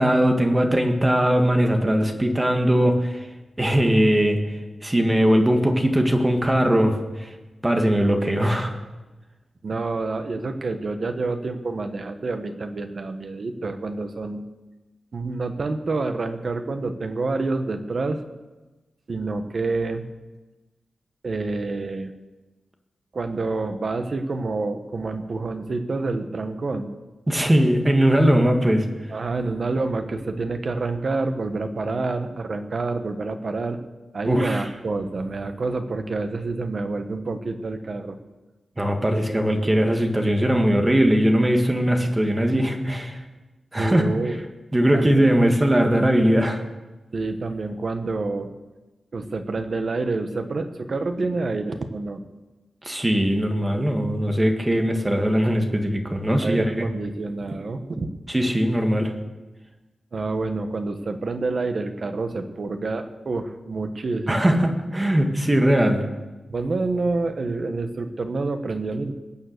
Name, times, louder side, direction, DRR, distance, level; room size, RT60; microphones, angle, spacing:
voice 1, 0.0-3.3 3.6-4.4 4.8-7.3 7.6-8.7 27.3-28.9 34.3-34.6 38.8-43.2 43.7-44.0 44.7-46.6 52.8-56.9 58.3-59.1 64.3-66.0, equal, 15° right, 4 dB, 1.8 m, -20 dB
voice 2, 9.6-14.4 15.1-18.2 19.1-20.0 21.2-22.1 23.1-26.9 29.1-33.8 34.1-38.2 43.8-44.3 44.9-45.5 47.1-48.5 49.1-52.2 56.4-58.1 58.5-58.6 60.1-64.5 66.5-69.1, right 3 dB, 45° right, 7 dB, 1.3 m, -28 dB
22.0 x 8.9 x 6.8 m, 1.1 s
wide cardioid pair, 155°, 0 cm